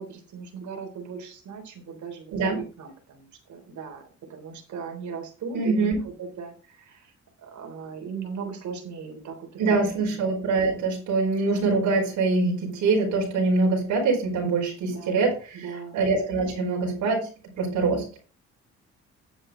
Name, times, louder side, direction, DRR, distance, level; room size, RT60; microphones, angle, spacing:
voice 1, 0.0-7.1 7.4-10.2 14.8-15.2 15.5-16.0, right 5 dB, 70° right, 4 dB, 3.6 m, -38 dB
voice 2, 2.3-2.6 5.5-6.0 9.6-17.3 17.5-18.1, right 3 dB, 85° right, -1 dB, 4.7 m, -24 dB
10.5 x 7.7 x 3.8 m, 0.35 s
cardioid pair, 90°, 30 cm